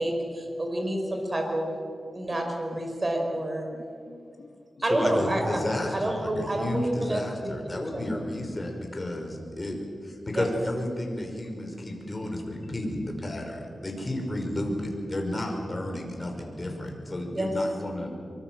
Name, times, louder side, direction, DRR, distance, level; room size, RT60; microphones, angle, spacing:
voice 1, 0.0-1.7 2.1-3.7 4.8-5.6 5.9-8.0 10.3-10.5 17.3-17.5, right 1 dB, 30° right, 3 dB, 5.3 m, -29 dB
voice 2, 3.7-4.7 6.3-6.8 8.0-8.3 9.5-9.8 11.6-12.0 12.6-13.1 15.9-16.1 16.6-17.6, left 2 dB, 70° left, 4 dB, 2.0 m, -45 dB
voice 3, 4.9-9.8 10.0-18.1, left 1 dB, 25° left, 2 dB, 5.5 m, -32 dB
24.5 x 24.0 x 7.7 m, 2.4 s
wide cardioid pair, 95°, 0 cm